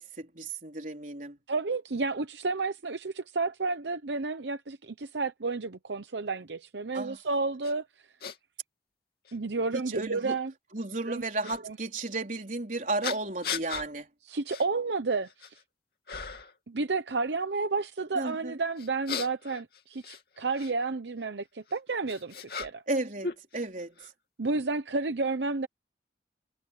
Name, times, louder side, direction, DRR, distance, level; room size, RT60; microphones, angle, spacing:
voice 1, 0.0-1.4 6.9-7.2 9.7-10.4 10.7-14.1 18.1-18.6 22.9-23.9, right 2 dB, 45° right, 4.3 m, -34 dB
voice 2, 1.5-7.9 9.3-10.5 11.1-11.2 11.6-11.8 14.2-15.6 16.7-22.8 24.4-25.7, right 3 dB, 75° right, 0.8 m, -31 dB
sound 1, 7.6-7.7 8.2-8.4 9.2-9.3 11.4-11.6 13.0-13.9 14.5-14.7 15.1-15.6 16.1-16.6 18.8-20.7 21.7-23.0 23.2-24.1, left 6 dB, 60° left, 3.0 m, -37 dB
head